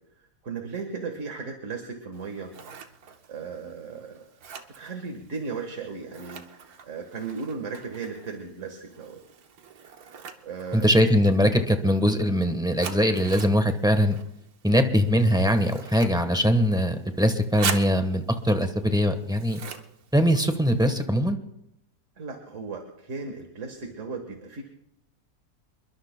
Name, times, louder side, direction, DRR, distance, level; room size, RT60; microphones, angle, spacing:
voice 1, 0.4-2.5 3.3-4.2 4.8-9.2 10.4-10.9 22.2-24.6, right 4 dB, 55° right, 4 dB, 1.8 m, -36 dB
Scissors, 2.1-20.9, right 6 dB, 75° right, 1.5 m, -42 dB
voice 2, 10.7-14.2 14.6-19.6 20.1-21.4, equal, 5° right, 7 dB, 0.9 m, -22 dB
28.0 x 22.0 x 2.2 m, 0.82 s
omnidirectional pair, 1.6 m